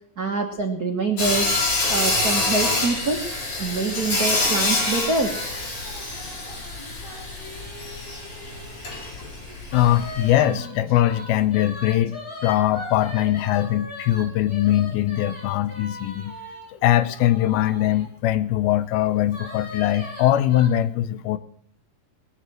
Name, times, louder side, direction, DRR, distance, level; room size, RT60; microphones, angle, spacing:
voice 1, 0.2-1.5 1.9-3.2 3.6-5.3, right 3 dB, 75° right, 2 dB, 0.8 m, -25 dB
Sawing, 1.2-10.3, left 2 dB, 50° left, 5.6 m, -26 dB
sound 1, 4.9-9.0 9.7-18.1 19.3-20.7, left 1 dB, 5° left, 5.5 m, -39 dB
voice 2, 9.7-12.1 12.4-16.3 16.8-21.4, left 13 dB, 90° left, 13 dB, 2.7 m, -21 dB
20.0 x 8.2 x 7.7 m, 0.63 s
omnidirectional pair, 4.2 m